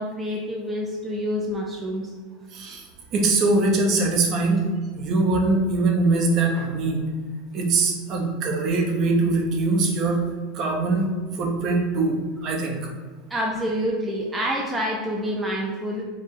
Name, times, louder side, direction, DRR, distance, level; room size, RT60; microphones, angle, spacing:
voice 1, 0.0-2.1 13.3-16.0, equal, 10° right, -2 dB, 0.5 m, -27 dB
voice 2, 2.5-2.9 3.1-4.6 4.9-7.0 7.5-10.2 10.5-11.1 11.3-12.9, right 3 dB, 40° right, 2 dB, 0.8 m, -22 dB
4.7 x 2.3 x 4.7 m, 1.4 s
supercardioid pair, 145°, 0 cm